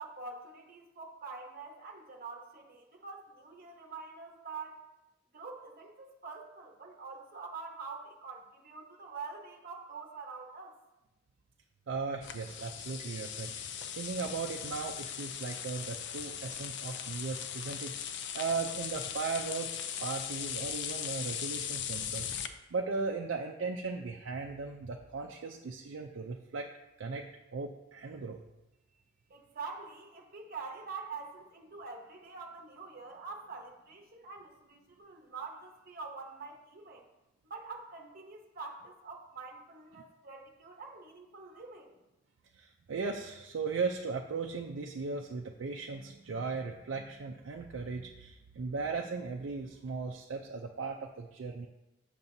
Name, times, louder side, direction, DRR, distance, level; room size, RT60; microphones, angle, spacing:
voice 1, 0.0-4.9 5.3-10.7 29.3-37.0 37.5-42.0, right 4 dB, 50° right, 1 dB, 0.9 m, -45 dB
voice 2, 11.9-26.7 27.0-27.3 27.5-28.4 42.5-51.7, right 4 dB, 70° right, 2 dB, 0.4 m, -37 dB
sound 1, 12.2-22.5, left 9 dB, 65° left, 0.4 m, -39 dB
7.1 x 6.7 x 2.7 m, 0.97 s
head